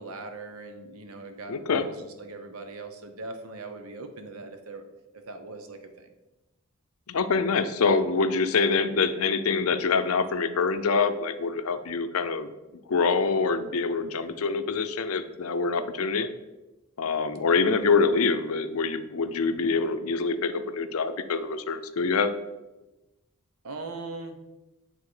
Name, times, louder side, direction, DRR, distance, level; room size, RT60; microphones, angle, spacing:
voice 1, 0.0-4.8 5.3-6.1 23.6-24.4, right 3 dB, 80° right, 7 dB, 0.9 m, -40 dB
voice 2, 1.5-1.9 7.1-12.5 12.9-16.3 17.0-22.3, left 4 dB, 80° left, 11 dB, 0.5 m, -25 dB
8.5 x 3.7 x 4.8 m, 1.1 s
head